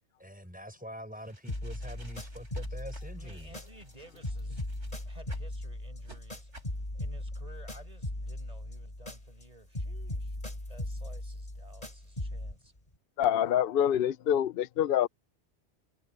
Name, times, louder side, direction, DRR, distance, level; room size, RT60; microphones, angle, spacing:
voice 1, 0.2-3.6, equal, 5° right, 5.6 m, -45 dB
sound 1, 1.2-5.5 6.0-6.2 6.5-6.8, right 2 dB, 75° right, 6.0 m, -54 dB
sound 2, 1.5-4.0 4.2-9.5 9.7-12.5, left 1 dB, 30° left, 4.2 m, -38 dB
voice 2, 3.2-4.6 5.1-12.7, right 1 dB, 30° right, 5.1 m, -55 dB
voice 3, 13.2-15.1, left 10 dB, 60° left, 0.7 m, -26 dB
omnidirectional pair, 1.2 m